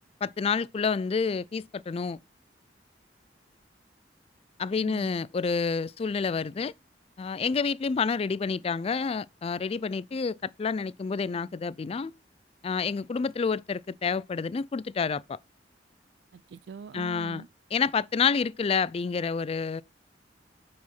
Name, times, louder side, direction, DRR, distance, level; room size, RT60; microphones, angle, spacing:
voice 1, 0.2-2.2 4.6-6.7 7.2-12.1 12.6-15.4 16.9-17.4 17.7-19.8, left 5 dB, 35° left, 0.3 m, -29 dB
voice 2, 4.8-5.1 16.3-17.5, right 5 dB, 65° right, 0.4 m, -43 dB
9.3 x 4.8 x 4.3 m
head